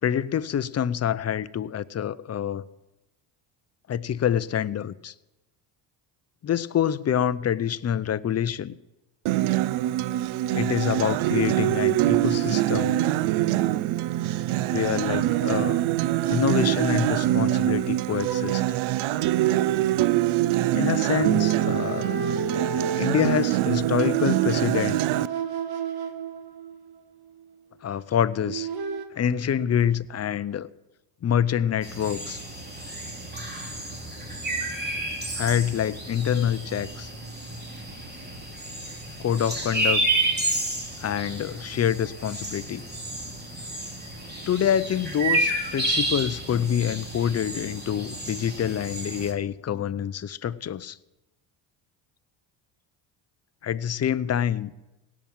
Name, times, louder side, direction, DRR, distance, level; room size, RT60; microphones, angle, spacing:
voice 1, 0.0-2.6 3.9-5.1 6.4-8.7 10.5-13.0 14.7-15.8 16.3-18.6 20.7-22.2 23.0-25.0 27.8-28.7 29.1-30.7 31.2-32.4 35.3-37.1 39.2-40.0 41.0-42.8 44.5-51.0 53.6-54.7, left 9 dB, 30° left, 0.6 m, -26 dB
Acoustic guitar, 9.3-25.3, right 14 dB, 70° right, 0.7 m, -24 dB
sound 1, 18.2-19.8 20.9-26.9 28.4-29.1, right 6 dB, 50° right, 1.5 m, -32 dB
sound 2, 31.8-49.3, right 2 dB, 20° right, 3.1 m, -31 dB
17.5 x 6.1 x 9.0 m
supercardioid pair, 75°, 50 cm